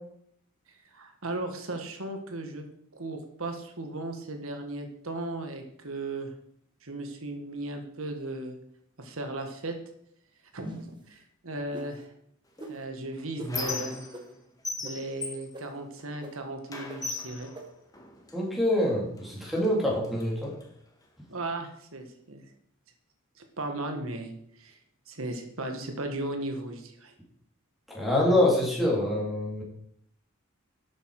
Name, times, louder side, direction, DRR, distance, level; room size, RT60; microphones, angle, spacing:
voice 1, 0.9-2.6 2.9-6.3 6.8-8.6 9.0-9.7 10.5-10.7 11.1-12.1 12.7-14.0 14.8-17.5 21.3-22.4 23.4-24.8 25.1-27.1, right 2 dB, 75° right, 5 dB, 1.7 m, -36 dB
sound 1, 10.6-11.0 11.7-11.9 12.6-12.7 13.4-13.5 14.1-14.2 14.8-14.9 15.5-15.6 16.2-16.3 16.9-17.0 17.5-17.6, right 1 dB, 20° right, 1.5 m, -41 dB
Squeak, 12.6-14.4 14.6-16.3 16.7-18.4 19.2-19.3 19.6-20.7, left 2 dB, 15° left, 1.7 m, -37 dB
voice 2, 18.3-20.5 27.9-29.6, left 1 dB, ahead, -3 dB, 2.9 m, -25 dB
12.0 x 8.3 x 4.8 m, 0.70 s
head